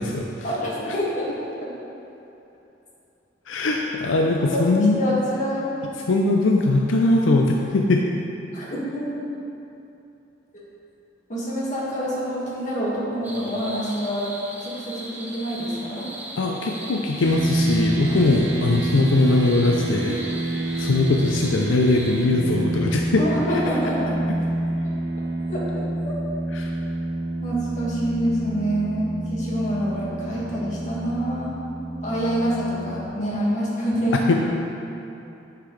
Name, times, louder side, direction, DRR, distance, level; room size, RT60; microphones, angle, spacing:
voice 1, 0.4-1.7 4.4-5.7 8.5-9.2 10.5-10.6 11.3-14.3 14.6-16.1 23.2-24.2 24.8-24.9 25.5-26.2 27.4-31.6 32.0-34.2, equal, 40° left, -7 dB, 1.8 m, -27 dB
voice 2, 3.5-5.0 6.1-8.0 16.4-23.2 26.5-26.7 34.1-34.3, left 2 dB, 85° left, 1 dB, 0.5 m, -21 dB
sound 1, 13.2-22.3, right 1 dB, 10° right, 0.8 m, -39 dB
sound 2, 17.2-33.1, right 1 dB, 60° right, 0.8 m, -28 dB
9.9 x 5.9 x 3.2 m, 2.8 s
head